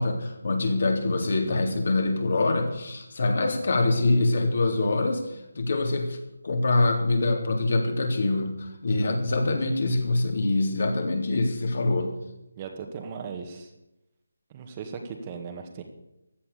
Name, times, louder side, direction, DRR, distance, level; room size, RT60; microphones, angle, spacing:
voice 1, 0.0-6.2 6.4-12.1, left 2 dB, 55° left, 3 dB, 3.6 m, -24 dB
voice 2, 8.9-9.6 12.6-13.7 14.5-15.8, right 6 dB, 25° right, 4 dB, 1.8 m, -38 dB
15.5 x 11.0 x 6.9 m, 0.90 s
figure-of-eight pair, 165°, 0 cm